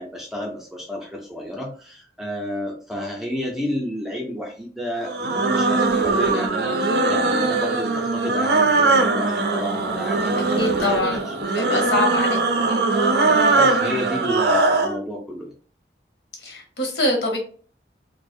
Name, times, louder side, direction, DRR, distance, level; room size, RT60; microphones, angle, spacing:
voice 1, 0.0-11.9 13.5-15.5, equal, ahead, -1 dB, 0.4 m, -31 dB
sound 1, 5.0-15.0, right 3 dB, 65° right, 0.4 m, -20 dB
voice 2, 10.5-11.2 11.5-12.4 12.7-12.9 16.4-17.4, left 2 dB, 75° left, 1 dB, 0.9 m, -24 dB
2.5 x 2.0 x 2.5 m, 0.42 s
head